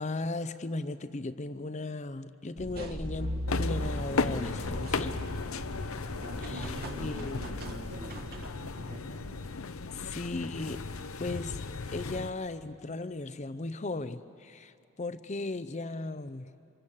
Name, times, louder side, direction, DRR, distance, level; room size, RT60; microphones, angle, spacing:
voice 1, 0.0-5.2 6.4-7.4 9.9-10.8 11.2-11.6 11.9-16.5, left 2 dB, 35° left, 13 dB, 0.6 m, -36 dB
sound 1, 2.6-8.5, equal, 45° right, 1.5 m, -38 dB
sound 2, 3.5-12.3, left 4 dB, 80° left, 0.8 m, -36 dB
voice 2, 6.0-9.4, equal, 75° right, -5 dB, 3.0 m, -46 dB
26.5 x 24.0 x 7.4 m, 2.6 s
head